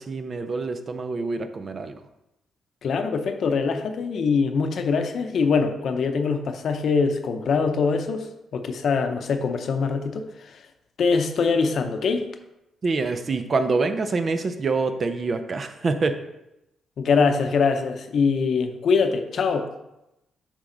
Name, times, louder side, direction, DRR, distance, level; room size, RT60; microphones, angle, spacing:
voice 1, 0.0-2.0 12.8-16.2, right 3 dB, 40° right, 8 dB, 0.6 m, -26 dB
voice 2, 2.8-10.6 11.0-12.3 17.0-19.7, left 5 dB, 65° left, 7 dB, 0.7 m, -23 dB
7.4 x 4.9 x 3.9 m, 0.90 s
cardioid pair, 95°, 0 cm